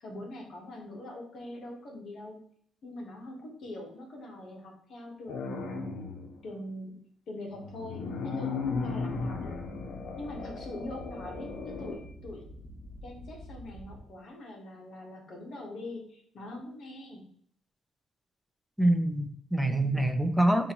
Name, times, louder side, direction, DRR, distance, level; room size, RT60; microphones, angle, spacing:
voice 1, 0.0-2.4 2.8-6.0 6.4-7.0 7.3-9.5 10.2-12.5 13.0-17.2 19.6-20.1, left 1 dB, 55° left, 0 dB, 1.0 m, -43 dB
sound 1, 5.3-6.4 7.5-12.0, left 4 dB, 80° left, 0.6 m, -36 dB
sound 2, 8.6-14.0, equal, 30° left, 1.5 m, -47 dB
voice 2, 18.8-20.7, right 1 dB, 5° right, 6 dB, 0.4 m, -26 dB
5.2 x 2.5 x 2.8 m, 0.65 s
cardioid pair, 135°, 0 cm